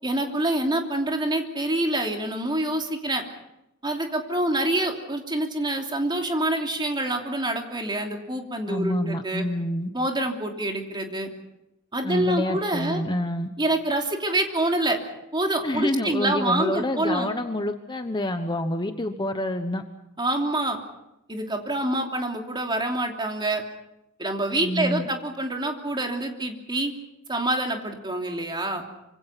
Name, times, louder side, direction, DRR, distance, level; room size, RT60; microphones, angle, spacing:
voice 1, 0.0-3.2 3.8-9.4 9.9-11.3 11.9-13.0 13.6-15.0 15.3-17.3 20.2-20.8 21.3-23.6 24.2-26.9 27.3-28.8, right 1 dB, 20° right, 3 dB, 3.0 m, -26 dB
voice 2, 8.7-9.9 12.0-13.5 15.6-19.8 24.6-25.1, left 1 dB, 20° left, 7 dB, 1.1 m, -27 dB
26.0 x 25.5 x 5.8 m, 0.88 s
head